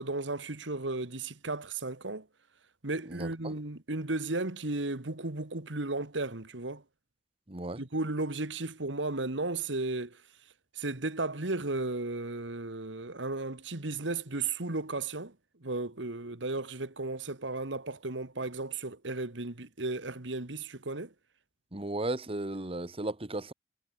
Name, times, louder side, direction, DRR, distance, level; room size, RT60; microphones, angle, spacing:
voice 1, 0.0-2.3 2.8-6.8 7.8-10.2 10.8-15.3 15.6-21.1, right 2 dB, 65° right, 2.0 m, -34 dB
voice 2, 3.1-3.5 7.5-7.8 21.7-23.5, right 2 dB, 30° right, 1.7 m, -35 dB
head